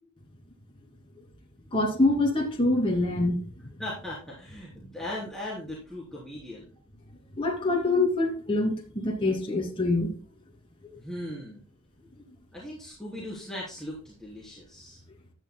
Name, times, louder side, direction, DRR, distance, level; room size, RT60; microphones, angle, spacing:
voice 1, 1.7-3.4 7.4-10.1, left 2 dB, 25° left, 2.6 m, -25 dB
voice 2, 3.8-6.7 11.0-11.6 12.5-15.0, left 1 dB, 5° left, 3.3 m, -38 dB
15.5 x 11.0 x 2.2 m
head